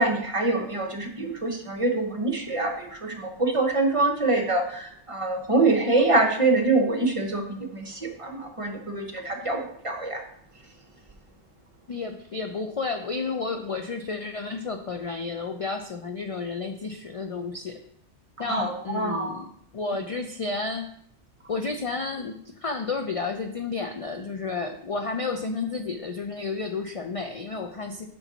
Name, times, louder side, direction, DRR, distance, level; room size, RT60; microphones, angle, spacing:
voice 1, 0.0-10.2 18.5-19.4, right 2 dB, 30° right, 4 dB, 0.8 m, -25 dB
voice 2, 11.9-17.8 18.4-20.9 21.5-28.1, left 4 dB, 65° left, 5 dB, 0.3 m, -31 dB
7.2 x 5.3 x 4.0 m, 0.67 s
omnidirectional pair, 1.2 m